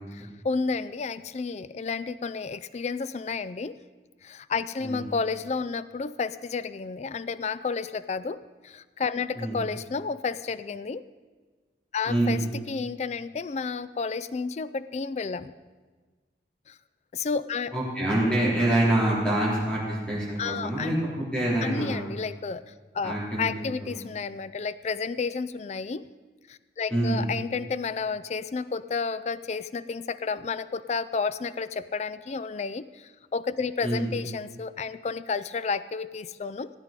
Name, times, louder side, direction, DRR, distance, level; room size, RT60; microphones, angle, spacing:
voice 1, 0.1-3.8 4.2-11.0 11.9-12.4 12.7-15.5 16.7-16.8 17.1-17.7 20.4-21.0 21.6-26.0 26.5-36.7, left 5 dB, 35° left, 14 dB, 0.3 m, -31 dB
voice 2, 12.1-12.4 17.7-22.1 23.0-23.6 23.9-24.0 26.9-27.2 33.8-34.1, right 1 dB, 5° left, -7 dB, 3.8 m, -26 dB
15.5 x 9.0 x 5.2 m, 1.4 s
head